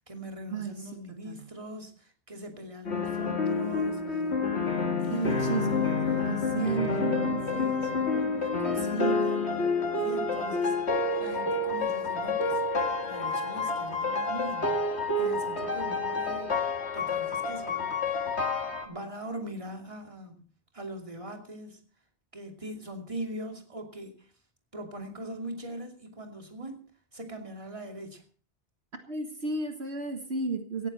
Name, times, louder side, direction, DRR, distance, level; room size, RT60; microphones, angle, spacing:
voice 1, 0.0-4.2 5.0-7.2 7.5-9.6 10.0-10.7 11.2-12.6 13.0-14.8 15.2-16.6 16.9-18.2 18.8-20.5 20.7-21.8 22.3-24.2 24.7-26.8 27.1-28.2, right 1 dB, 30° right, 3 dB, 2.7 m, -41 dB
sound 1, 2.8-18.9, left 3 dB, 70° left, 2.3 m, -29 dB
voice 2, 5.1-5.7 6.2-7.5 29.1-30.9, right 4 dB, 70° right, 5 dB, 2.0 m, -32 dB
17.5 x 14.0 x 4.3 m, 0.41 s
omnidirectional pair, 1.2 m